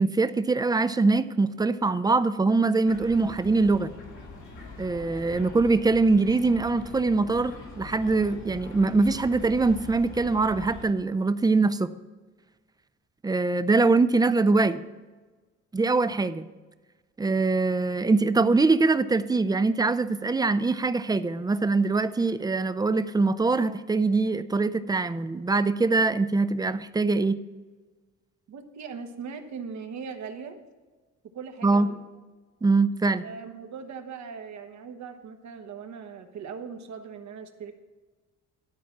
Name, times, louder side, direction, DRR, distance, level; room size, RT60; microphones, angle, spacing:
voice 1, 0.0-3.9 4.8-11.9 13.2-14.8 15.7-16.5 17.2-27.4 31.6-31.9 32.6-33.2, right 3 dB, 15° right, 13 dB, 0.4 m, -23 dB
sound 1, 2.9-10.9, left 3 dB, 75° left, 2.3 m, -43 dB
voice 2, 28.5-30.6 31.2-32.1 33.2-37.7, right 6 dB, 70° right, 6 dB, 1.1 m, -40 dB
12.0 x 4.2 x 5.9 m, 1.3 s
cardioid pair, 90°, 30 cm